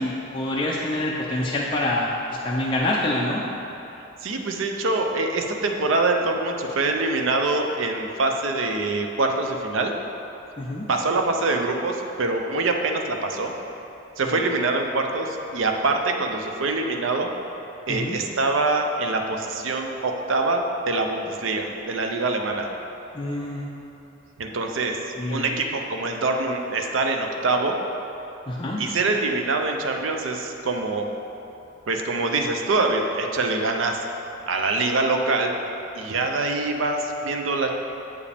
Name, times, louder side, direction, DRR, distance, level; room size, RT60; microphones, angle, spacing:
voice 1, 0.0-2.2 2.4-3.4 10.6-10.9 14.2-14.4 17.9-18.2 23.1-23.7 25.1-25.5 28.5-28.8, left 1 dB, 25° left, -5 dB, 0.5 m, -26 dB
voice 2, 4.2-9.9 10.9-13.5 14.2-17.3 17.9-22.7 24.4-25.0 25.3-27.8 28.8-31.1 31.9-34.0 34.5-35.6 36.0-37.7, right 3 dB, 70° right, 3 dB, 0.6 m, -24 dB
8.1 x 4.9 x 3.4 m, 3.0 s
head